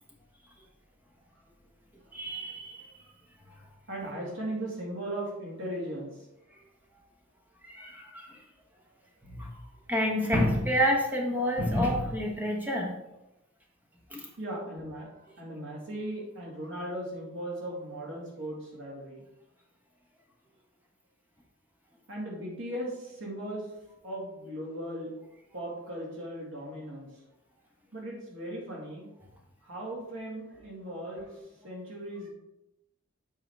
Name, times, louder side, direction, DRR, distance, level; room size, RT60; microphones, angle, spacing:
voice 1, 2.1-2.9 7.6-8.4 9.2-9.6 9.9-12.9 14.1-14.3, equal, 10° right, -1 dB, 1.2 m, -28 dB
voice 2, 3.9-6.2 14.4-19.2 22.1-23.7 24.0-25.1 25.5-27.1 27.9-29.1 29.6-31.4 31.6-32.3, right 1 dB, 75° right, -3 dB, 2.2 m, -38 dB
7.5 x 4.8 x 3.5 m, 0.91 s
head